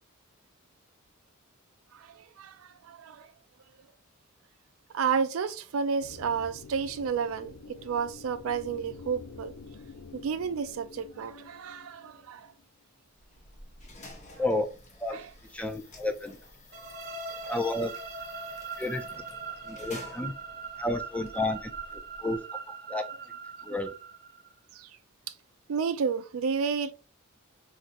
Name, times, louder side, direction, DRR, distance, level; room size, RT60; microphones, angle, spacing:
voice 1, 1.9-3.3 4.9-9.5 10.1-12.5 15.1-15.3 24.7-24.9 25.7-26.9, right 6 dB, 75° right, 0.4 m, -31 dB
sound 1, 6.0-12.6, left 4 dB, 80° left, 0.5 m, -48 dB
sound 2, 13.2-22.5, left 2 dB, 35° left, 0.8 m, -51 dB
voice 2, 15.5-16.4 17.4-17.9 18.8-19.0 19.7-20.3 20.8-22.4 22.9-23.0 23.6-23.9, left 2 dB, 5° left, 0.3 m, -31 dB
sound 3, 16.7-24.5, right 4 dB, 50° right, 0.7 m, -41 dB
4.1 x 2.5 x 2.5 m
head